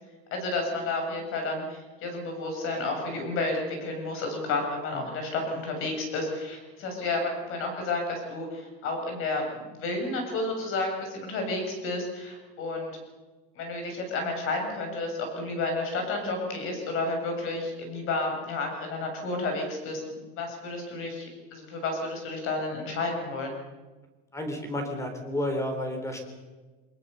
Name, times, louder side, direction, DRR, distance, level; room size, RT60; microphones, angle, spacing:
voice 1, 0.3-13.0 13.6-23.5, left 2 dB, 45° left, 3 dB, 7.4 m, -31 dB
voice 2, 24.3-26.2, left 1 dB, 10° left, 5 dB, 3.7 m, -31 dB
25.0 x 20.5 x 6.9 m, 1.3 s
cardioid pair, 170°, 30 cm